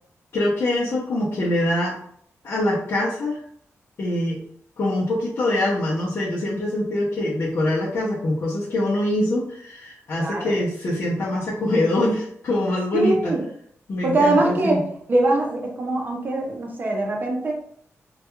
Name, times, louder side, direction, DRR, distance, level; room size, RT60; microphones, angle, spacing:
voice 1, 0.3-1.9 2.4-3.4 4.0-4.4 4.8-13.3 13.9-14.8, left 1 dB, 50° left, -6 dB, 0.5 m, -24 dB
voice 2, 10.2-10.5 12.9-13.4 14.0-14.8 15.1-17.5, right 2 dB, 35° right, 0 dB, 0.6 m, -22 dB
2.2 x 2.2 x 2.9 m, 0.65 s
wide cardioid pair, 160°, 5 cm